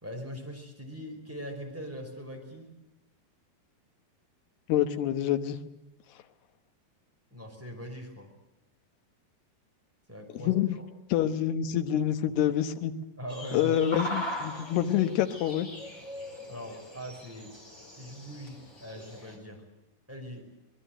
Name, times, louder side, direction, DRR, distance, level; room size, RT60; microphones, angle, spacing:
voice 1, 0.0-2.7 7.3-8.3 10.1-10.9 13.2-13.7 16.5-17.5 17.9-19.6 20.1-20.5, equal, 5° right, 1 dB, 4.7 m, -41 dB
voice 2, 4.7-5.6 10.3-10.8 11.1-12.9 13.5-15.7, left 11 dB, 75° left, 9 dB, 3.2 m, -27 dB
sound 1, 13.3-19.3, equal, 15° left, 3.8 m, -40 dB
25.0 x 20.5 x 7.9 m, 0.93 s
omnidirectional pair, 4.8 m